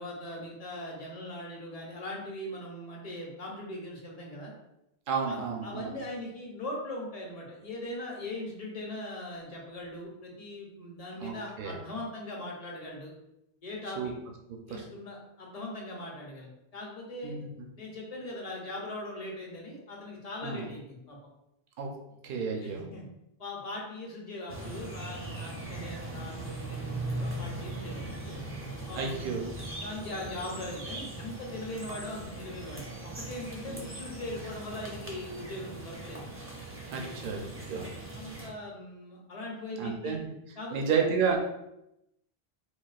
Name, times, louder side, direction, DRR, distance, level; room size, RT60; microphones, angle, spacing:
voice 1, 0.0-4.5 5.3-13.1 13.6-14.1 14.7-17.4 17.8-21.2 22.6-23.0 23.4-28.4 28.9-29.4 29.8-36.3 36.9-37.3 38.1-40.2 40.6-40.9, left 1 dB, 40° left, -2 dB, 0.8 m, -40 dB
voice 2, 5.1-5.9 11.2-11.8 14.0-14.1 14.5-14.6 17.2-17.7 20.4-20.7 21.8-21.9 22.2-22.8 29.0-29.5 33.7-33.8 36.9-37.4 37.7-37.9 39.8-40.3 40.7-41.4, right 6 dB, 60° right, 1 dB, 0.7 m, -31 dB
sound 1, 24.5-38.5, right 2 dB, 20° right, 0.4 m, -40 dB
4.0 x 2.3 x 2.4 m, 0.85 s
omnidirectional pair, 1.0 m